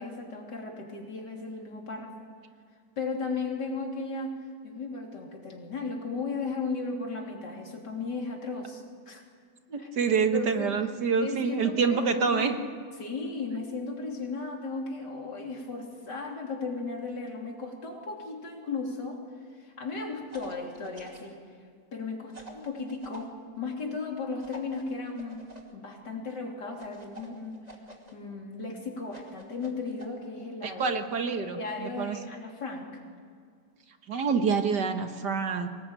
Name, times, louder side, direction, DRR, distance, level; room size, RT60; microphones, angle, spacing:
voice 1, 0.0-2.3 3.0-9.2 9.8-10.7 11.2-12.5 13.0-19.2 19.5-21.4 21.9-25.5 25.7-27.6 28.1-31.0 31.4-33.0, left 4 dB, 70° left, 1 dB, 3.8 m, -36 dB
voice 2, 9.7-12.6 30.6-32.2 34.1-35.7, right 5 dB, 70° right, 6 dB, 2.0 m, -27 dB
sound 1, 20.3-21.3 22.3-23.3 24.4-25.7 26.8-28.1 29.1-30.1, right 2 dB, 20° right, 2.7 m, -48 dB
24.5 x 19.0 x 9.0 m, 2.1 s
omnidirectional pair, 1.9 m